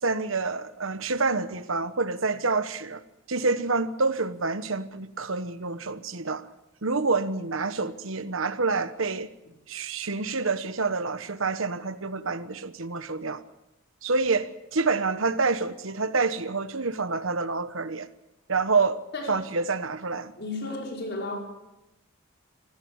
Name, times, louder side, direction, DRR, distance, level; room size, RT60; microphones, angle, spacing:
voice 1, 0.0-3.0 3.3-6.5 6.8-9.3 9.7-13.4 14.0-18.1 18.5-19.0 19.3-20.3, right 4 dB, 70° right, 1.2 m, -27 dB
voice 2, 20.4-21.4, left 2 dB, 55° left, 5.4 m, -33 dB
26.0 x 16.0 x 7.2 m
head